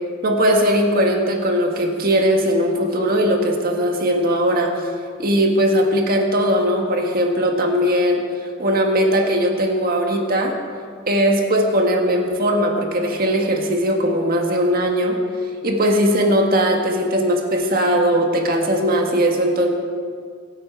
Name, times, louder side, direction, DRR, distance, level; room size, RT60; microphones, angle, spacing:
voice 1, 0.2-4.7 5.2-8.2 8.6-10.5 11.1-15.2 15.6-19.7, equal, 45° right, 2 dB, 1.7 m, -19 dB
24.5 x 9.1 x 4.7 m, 2.1 s
head